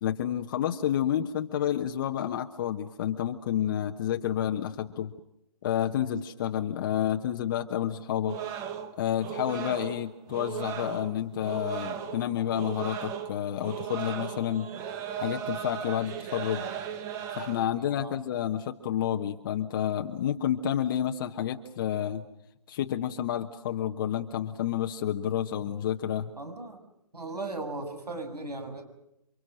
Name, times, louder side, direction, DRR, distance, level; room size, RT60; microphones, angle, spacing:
voice 1, 0.0-5.1 5.6-8.4 9.0-14.7 15.2-16.6 17.3-22.2 22.7-26.3, left 10 dB, 30° left, 5 dB, 1.1 m, -30 dB
sound 1, 8.3-17.7, right 8 dB, 15° right, 1.0 m, -37 dB
voice 2, 17.8-18.1 26.3-26.8 27.1-28.8, right 2 dB, 80° right, 7 dB, 6.9 m, -37 dB
29.0 x 25.0 x 6.4 m, 0.83 s
figure-of-eight pair, 145°, 20 cm